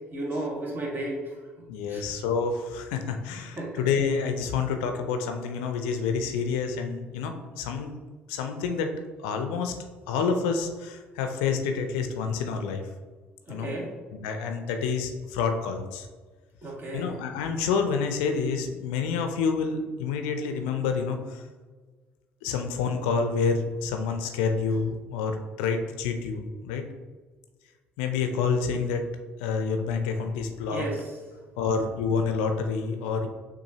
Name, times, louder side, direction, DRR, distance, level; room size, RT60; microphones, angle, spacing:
voice 1, 0.1-1.2 1.9-2.0 3.6-3.7 13.5-13.9 16.6-17.1 30.7-31.0, right 1 dB, 35° right, -1 dB, 1.3 m, -33 dB
voice 2, 1.7-8.0 8.3-8.9 9.2-9.7 10.1-12.9 13.5-13.8 14.1-16.1 16.9-21.4 22.4-26.8 28.0-29.1 29.4-30.9 31.6-33.3, left 5 dB, 75° left, 6 dB, 0.4 m, -28 dB
6.6 x 2.6 x 2.7 m, 1.4 s
hypercardioid pair, 50°, 6 cm